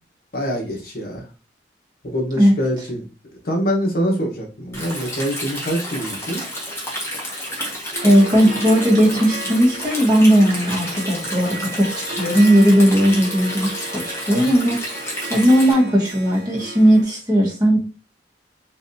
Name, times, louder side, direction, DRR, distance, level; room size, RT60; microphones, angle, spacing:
voice 1, 0.3-1.2 2.1-3.0 3.4-6.4, equal, 55° left, 1 dB, 1.1 m, -24 dB
Stream, 4.7-15.7, equal, 15° left, 1.2 m, -30 dB
Harp, 7.9-17.0, right 2 dB, 45° right, 1.0 m, -35 dB
voice 2, 8.0-14.8 15.3-17.8, equal, 20° right, -4 dB, 1.3 m, -16 dB
3.9 x 3.1 x 2.6 m, 0.33 s
head